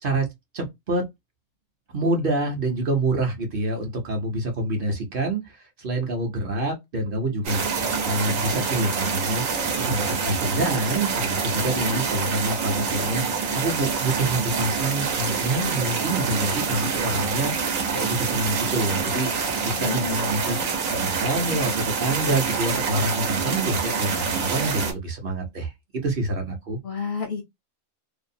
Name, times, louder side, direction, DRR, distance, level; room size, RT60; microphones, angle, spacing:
voice 1, 0.5-1.0 1.9-7.6 8.0-13.2 13.5-17.5 17.9-19.3 19.6-20.6 20.9-25.7 26.0-26.8, right 2 dB, 50° right, 0.8 m, -27 dB
sound 1, 7.4-24.9, right 5 dB, 90° right, 1.2 m, -26 dB
voice 2, 11.5-12.0 19.7-20.7 26.8-27.4, left 5 dB, 60° left, 0.6 m, -32 dB
2.6 x 2.0 x 2.5 m
omnidirectional pair, 1.3 m